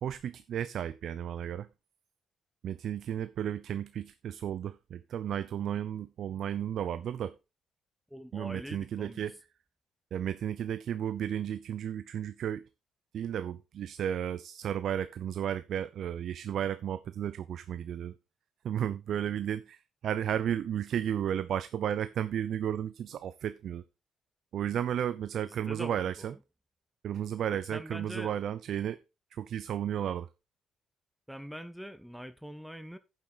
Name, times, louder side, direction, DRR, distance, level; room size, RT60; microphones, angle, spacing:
voice 1, 0.0-1.7 2.6-7.3 8.3-9.4 10.1-12.6 13.1-18.1 18.6-23.8 24.5-26.3 27.0-29.0 29.3-30.3, right 9 dB, 70° right, 0.5 m, -33 dB
voice 2, 8.1-9.3 25.4-26.4 27.5-28.3 31.3-33.0, equal, ahead, 1.0 m, -44 dB
9.6 x 7.5 x 4.1 m
cardioid pair, 90°, 0 cm